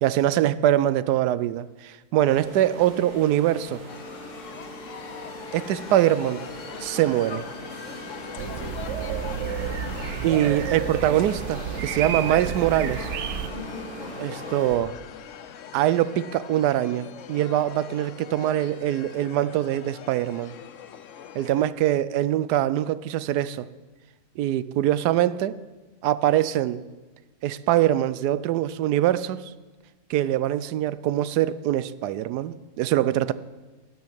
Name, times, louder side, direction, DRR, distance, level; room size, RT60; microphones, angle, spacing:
voice 1, 0.0-3.8 5.5-6.4 6.8-7.4 10.2-13.1 14.2-14.9 15.7-20.5 21.3-23.7 24.4-25.6 26.0-26.8 27.4-29.5 30.1-33.3, right 12 dB, 85° right, 16 dB, 1.2 m, -23 dB
sound 1, 2.3-14.7, equal, 30° right, 2.6 m, -40 dB
sound 2, 3.9-21.7, left 8 dB, 60° left, 0.9 m, -41 dB
sound 3, 8.4-13.5, right 8 dB, 65° right, 0.8 m, -31 dB
12.0 x 7.3 x 8.7 m, 1.2 s
omnidirectional pair, 1.7 m